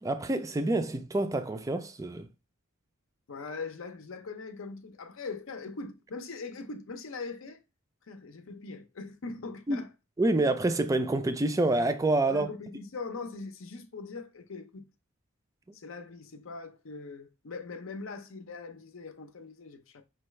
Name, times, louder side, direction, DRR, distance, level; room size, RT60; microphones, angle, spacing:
voice 1, 0.0-2.3 9.7-9.8 10.2-12.5, right 2 dB, 15° right, 0.3 m, -27 dB
voice 2, 3.3-7.6 8.1-9.9 12.3-14.9 15.7-20.0, left 4 dB, 70° left, 0.6 m, -41 dB
5.2 x 2.3 x 3.1 m
head